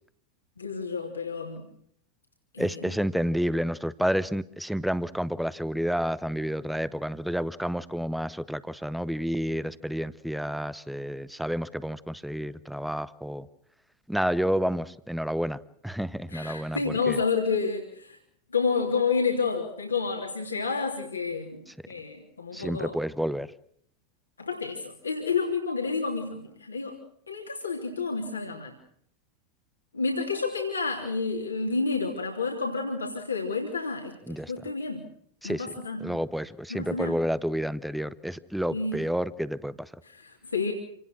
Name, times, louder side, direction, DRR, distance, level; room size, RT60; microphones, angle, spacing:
voice 1, 0.6-1.6 2.5-2.8 16.3-18.2 18.5-23.0 24.4-27.0 27.3-28.7 29.9-35.0 35.4-36.0 36.7-37.1 38.7-39.0 40.0-40.7, left 4 dB, 75° left, 0 dB, 3.1 m, -30 dB
voice 2, 2.6-13.5 14.1-17.2 21.7-21.8 22.5-23.5 34.3-34.5 35.4-35.7 36.0-39.9, equal, ahead, 18 dB, 0.9 m, -30 dB
28.0 x 19.0 x 6.2 m, 0.67 s
figure-of-eight pair, 90°, 0 cm